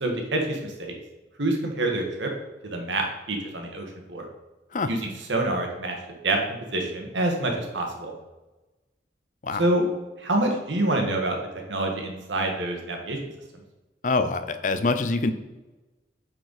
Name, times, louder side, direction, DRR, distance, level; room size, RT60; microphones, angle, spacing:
voice 1, 0.0-0.9 1.4-2.3 2.6-4.2 4.9-6.0 6.2-8.1 9.6-9.8 10.2-11.4 11.7-13.2, right 2 dB, 85° right, 2 dB, 1.6 m, -27 dB
voice 2, 14.0-15.3, left 3 dB, 45° left, 10 dB, 0.5 m, -25 dB
9.1 x 4.5 x 4.1 m, 1.1 s
head